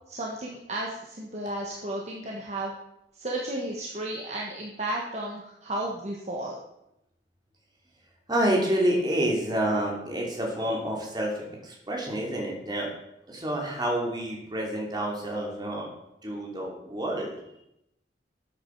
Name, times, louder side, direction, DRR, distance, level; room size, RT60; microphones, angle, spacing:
voice 1, 0.1-2.7 3.2-6.6, right 1 dB, 40° right, -2 dB, 1.5 m, -33 dB
voice 2, 8.3-12.9 13.3-15.9 16.2-17.3, right 1 dB, 25° right, -1 dB, 3.0 m, -28 dB
13.0 x 8.8 x 4.8 m, 0.83 s
head